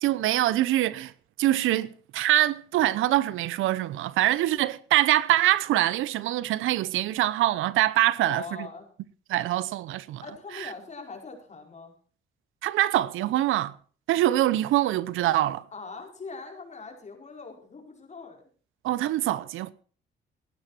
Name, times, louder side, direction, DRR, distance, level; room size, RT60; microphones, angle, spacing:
voice 1, 0.0-1.1 1.4-8.7 9.3-10.2 10.5-10.7 12.6-13.8 14.1-15.6 18.8-19.7, right 14 dB, 85° right, 0.8 m, -24 dB
voice 2, 8.1-8.9 10.2-11.9 15.7-18.4, left 4 dB, 35° left, 5.2 m, -41 dB
16.0 x 11.5 x 4.4 m
cardioid pair, 90°, 20 cm